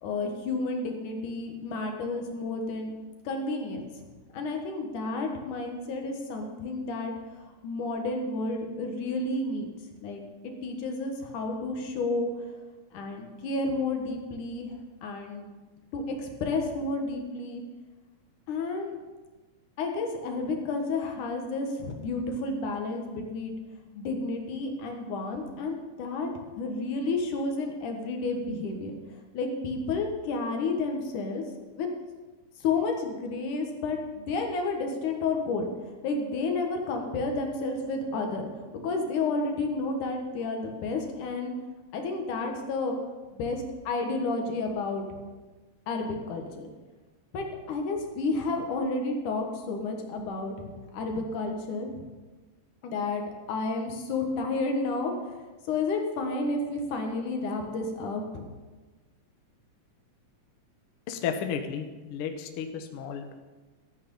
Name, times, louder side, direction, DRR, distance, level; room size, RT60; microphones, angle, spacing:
voice 1, 0.0-2.9 3.2-3.8 4.3-7.1 7.6-9.7 10.0-10.2 10.6-12.3 12.9-14.7 15.0-15.4 15.9-17.6 18.5-18.9 19.8-23.5 23.9-26.3 26.6-29.0 29.3-31.4 31.8-31.9 32.6-35.7 36.0-38.5 38.8-41.5 41.9-43.0 43.3-45.0 45.9-46.7 47.3-50.5 50.9-52.0 52.8-55.3 55.7-58.4, left 3 dB, 85° left, 3 dB, 3.0 m, -31 dB
voice 2, 61.1-63.3, left 7 dB, 65° left, 6 dB, 1.5 m, -33 dB
14.0 x 8.7 x 5.5 m, 1.2 s
omnidirectional pair, 3.5 m